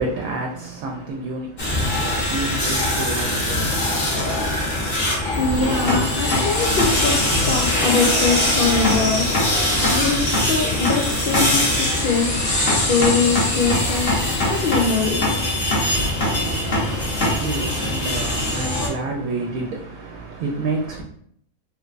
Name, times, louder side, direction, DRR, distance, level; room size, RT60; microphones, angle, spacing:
voice 1, 0.0-4.4 16.2-21.0, right 3 dB, 80° right, 0 dB, 1.0 m, -30 dB
sound 1, 1.6-18.9, left 1 dB, 45° left, 1.1 m, -21 dB
voice 2, 5.4-9.3 9.9-12.3 12.7-14.1 14.4-15.4, left 4 dB, 75° left, -2 dB, 0.4 m, -23 dB
3.2 x 3.2 x 2.4 m, 0.65 s
omnidirectional pair, 1.5 m